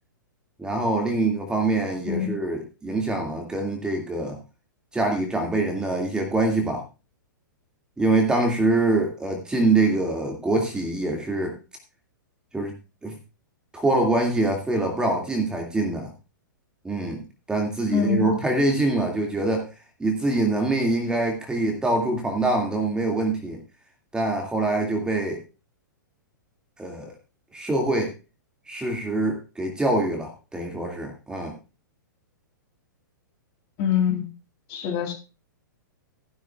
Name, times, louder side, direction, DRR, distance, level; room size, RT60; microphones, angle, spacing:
voice 1, 0.6-4.4 4.9-6.8 8.0-11.6 12.5-12.8 13.0-13.2 13.7-16.1 16.8-17.2 17.5-19.7 20.0-23.6 24.1-25.4 26.8-27.1 27.5-28.1 28.7-31.5, right 2 dB, 5° right, 2 dB, 2.2 m, -24 dB
voice 2, 2.1-2.4 17.9-18.3 33.8-34.2 34.7-35.1, left 6 dB, 35° left, 2 dB, 3.5 m, -24 dB
15.5 x 11.0 x 2.4 m, 0.31 s
figure-of-eight pair, 110°, 11 cm